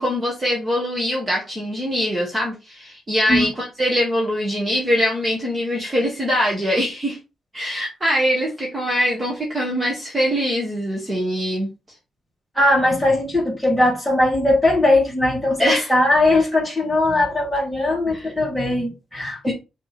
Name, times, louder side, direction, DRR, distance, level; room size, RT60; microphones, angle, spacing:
voice 1, 0.0-7.2 7.5-11.7 15.6-15.9 18.1-18.3 19.4-19.5, equal, 20° right, 1.9 m, -23 dB
voice 2, 12.5-19.5, left 1 dB, ahead, 3.1 m, -19 dB
6.6 x 3.6 x 4.4 m
cardioid pair, 135°, 0 cm